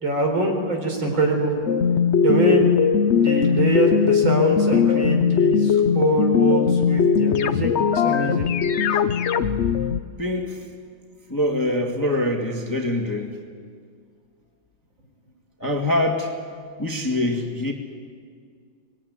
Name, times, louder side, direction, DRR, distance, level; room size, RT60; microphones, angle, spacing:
voice 1, 0.0-1.5 2.2-2.7 3.1-8.5, right 2 dB, 65° right, 2 dB, 5.1 m, -24 dB
sound 1, 1.7-10.0, left 7 dB, 85° left, 0.6 m, -20 dB
voice 2, 10.2-10.6 11.3-13.4 15.6-16.3 16.8-17.7, left 1 dB, 10° left, 2 dB, 1.7 m, -24 dB
25.0 x 20.5 x 9.6 m, 2.1 s
omnidirectional pair, 2.3 m